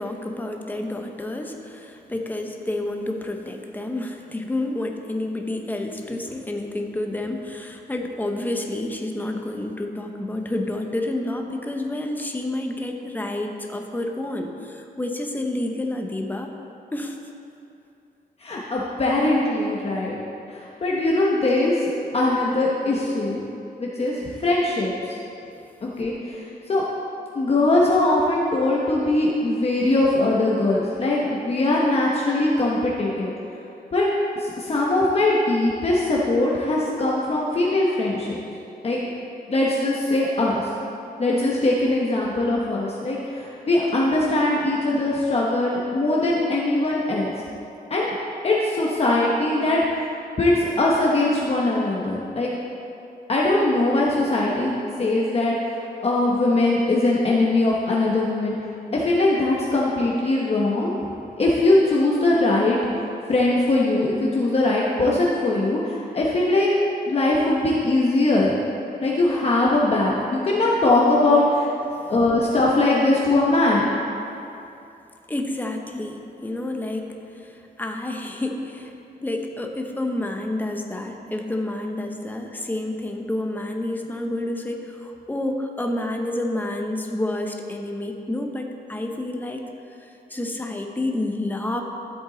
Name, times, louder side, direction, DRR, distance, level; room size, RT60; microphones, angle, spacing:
voice 1, 0.0-16.5 16.9-17.2 72.0-72.1 75.3-78.9 79.2-89.6 90.0-91.8, left 1 dB, 10° left, 3 dB, 0.8 m, -29 dB
voice 2, 18.4-20.2 20.5-23.4 23.8-25.2 25.8-26.8 27.3-33.3 33.9-34.1 34.4-38.4 38.8-39.0 39.5-40.7 41.2-47.3 47.9-48.1 48.4-50.1 50.4-52.5 53.3-54.7 55.0-58.6 58.9-60.9 61.4-63.0 63.3-66.7 67.1-68.6 69.0-71.7 72.1-73.9, left 2 dB, 35° left, -4 dB, 1.0 m, -21 dB
13.0 x 7.9 x 3.9 m, 2.7 s
wide cardioid pair, 165°, 17 cm